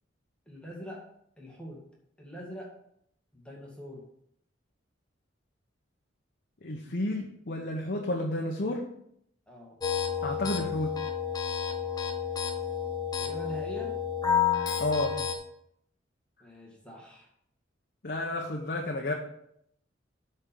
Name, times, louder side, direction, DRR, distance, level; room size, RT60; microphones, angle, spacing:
voice 1, 0.5-1.0 1.4-1.8 2.2-2.7 3.3-4.0 9.5-9.8 13.2-14.0 16.4-17.3, equal, 5° left, -3 dB, 2.0 m, -43 dB
voice 2, 6.6-8.9 10.2-11.0 14.8-15.2 18.0-19.1, left 1 dB, 55° left, 0 dB, 1.0 m, -31 dB
sound 1, 9.8-15.4, left 8 dB, 20° left, 1.0 m, -30 dB
8.6 x 4.5 x 7.1 m, 0.72 s
head